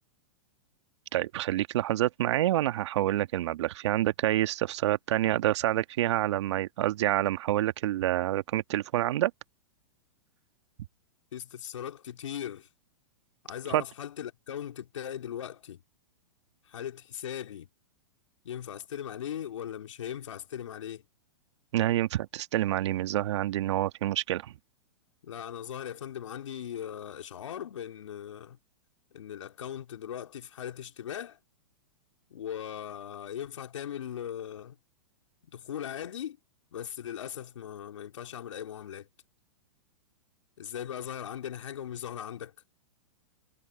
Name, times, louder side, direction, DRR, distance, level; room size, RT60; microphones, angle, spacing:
voice 1, 1.1-9.3 13.7-13.8 21.7-24.5, right 14 dB, 65° right, 1.5 m, -27 dB
voice 2, 11.3-12.7 13.4-15.8 16.6-17.7 18.4-21.0 25.2-28.6 29.1-31.4 32.3-34.7 35.4-36.4 36.7-39.1 40.6-42.5, left 9 dB, 75° left, 3.4 m, -39 dB
hypercardioid pair, 120°, 16 cm